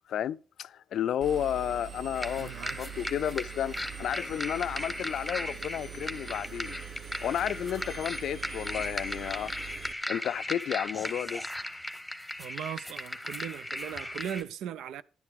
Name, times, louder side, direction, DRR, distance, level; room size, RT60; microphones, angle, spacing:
voice 1, 0.1-2.5 2.8-6.8 7.2-9.8 10.1-11.4, left 10 dB, 70° left, 0.4 m, -32 dB
Engine, 1.2-9.9, right 7 dB, 50° right, 1.2 m, -43 dB
sound 1, 2.2-14.4, left 1 dB, 5° left, 1.2 m, -37 dB
voice 2, 2.4-2.8 12.4-15.0, right 10 dB, 80° right, 0.6 m, -38 dB
12.0 x 10.5 x 3.6 m
cardioid pair, 90°, 0 cm